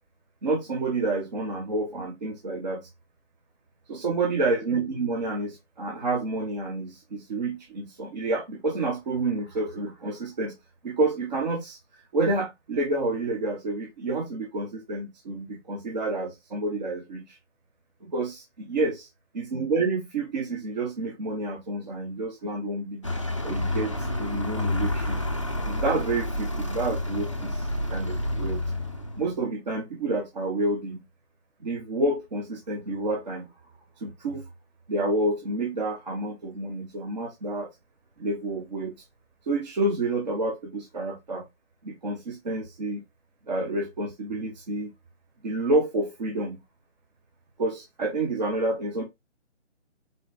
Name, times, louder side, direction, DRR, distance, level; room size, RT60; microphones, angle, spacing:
voice 1, 0.4-2.9 3.9-10.6 10.8-11.8 12.1-17.4 18.0-19.1 19.3-23.1 23.4-25.2 25.6-28.6 29.2-31.0 31.6-33.5 34.0-34.4 34.9-37.7 38.2-38.9 39.5-41.4 41.8-43.0 43.5-44.9 45.4-46.6 47.6-49.0, right 2 dB, 40° right, 1.0 m, -29 dB
Vehicle, 23.0-29.4, left 1 dB, 30° left, 0.4 m, -29 dB
4.0 x 3.9 x 2.6 m
figure-of-eight pair, 150°, 35 cm